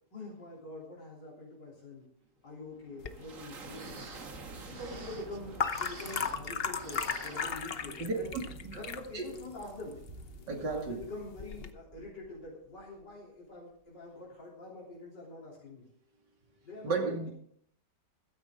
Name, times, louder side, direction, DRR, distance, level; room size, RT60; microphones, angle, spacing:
voice 1, 0.1-2.1 2.4-4.1 4.7-8.3 8.7-10.0 10.6-15.8 16.6-17.3, left 2 dB, 85° left, -5 dB, 4.0 m, -45 dB
sound 1, 2.4-13.1, right 4 dB, 50° right, 1.9 m, -50 dB
sound 2, 3.0-11.7, left 6 dB, 45° left, 0.9 m, -38 dB
Inflating Balloon, 3.7-6.5 6.7-8.1 8.5-8.6 9.3-9.5 10.0-10.1, right 3 dB, 35° right, 1.5 m, -50 dB
voice 2, 10.5-11.0 16.8-17.3, right 3 dB, 80° right, 2 dB, 3.2 m, -33 dB
15.5 x 13.0 x 3.7 m, 0.65 s
omnidirectional pair, 1.8 m